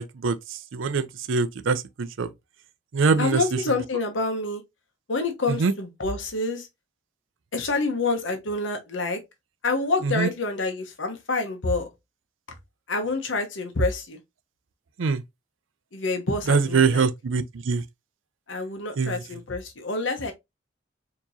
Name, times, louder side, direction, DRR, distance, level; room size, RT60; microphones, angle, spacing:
voice 1, 0.0-2.3 2.9-3.8 5.5-5.7 10.0-10.3 15.0-15.2 16.4-17.8 19.0-19.2, right 4 dB, 90° right, 0.5 m, -24 dB
voice 2, 3.2-4.6 5.1-6.7 7.5-9.2 9.6-11.9 12.9-14.2 15.9-17.1 18.5-20.3, left 3 dB, 80° left, 1.0 m, -27 dB
4.4 x 3.0 x 2.7 m
head